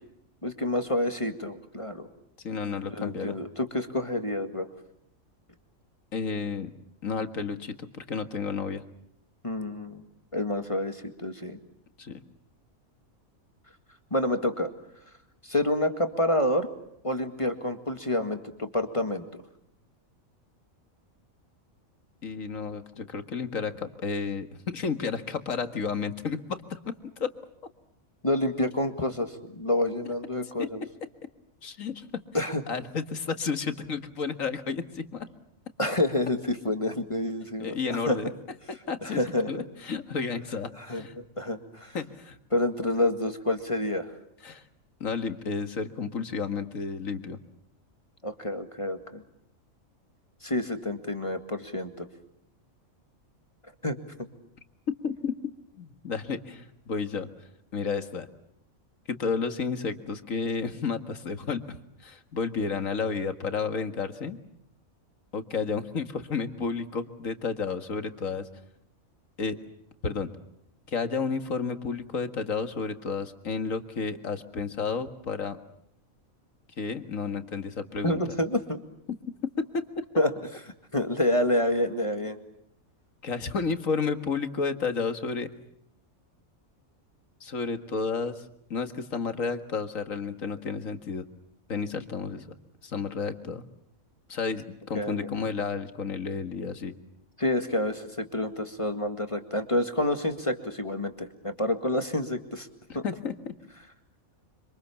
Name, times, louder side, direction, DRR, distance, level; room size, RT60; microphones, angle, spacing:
voice 1, 0.4-2.1 2.9-4.7 9.4-10.0 10.3-11.6 14.1-14.7 15.4-16.7 17.0-19.4 28.2-30.8 32.3-32.6 35.8-38.2 39.0-39.7 40.8-41.0 41.4-42.0 42.5-44.1 48.2-49.2 50.4-52.1 53.8-54.3 78.0-78.8 80.2-80.3 80.9-82.4 94.9-95.3 97.4-102.7 102.9-103.0, left 1 dB, 20° left, 7 dB, 2.0 m, -28 dB
voice 2, 2.4-3.4 6.1-6.7 7.0-8.8 12.0-12.2 22.2-26.9 27.2-27.3 30.6-30.7 31.6-32.1 32.7-35.3 37.6-38.3 38.9-39.2 39.5-41.1 41.9-42.4 44.4-44.6 45.0-47.4 55.0-55.3 55.8-57.3 57.7-58.3 59.1-64.4 65.3-68.5 69.4-69.6 70.0-70.3 70.9-75.6 76.8-78.2 79.6-80.0 83.2-85.5 87.4-91.3 91.7-92.5 92.8-93.6 94.3-96.9 102.9-103.5, left 5 dB, 70° left, 9 dB, 2.2 m, -31 dB
26.5 x 26.5 x 7.1 m, 0.77 s
omnidirectional pair, 1.4 m